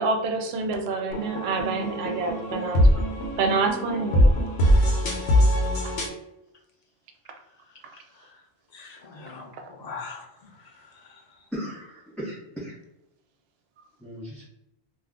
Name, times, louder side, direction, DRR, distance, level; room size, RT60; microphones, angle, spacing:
voice 1, 0.0-3.1 3.4-4.3, right 3 dB, 80° right, 5 dB, 0.8 m, -27 dB
sound 1, 1.1-6.1, equal, 90° left, 0.9 m, -22 dB
voice 2, 7.7-8.4 8.7-11.4, left 4 dB, 45° left, -1 dB, 0.7 m, -44 dB
voice 3, 11.5-12.7 14.0-14.5, equal, ahead, -7 dB, 0.4 m, -36 dB
2.4 x 2.4 x 3.5 m, 0.89 s
omnidirectional pair, 1.0 m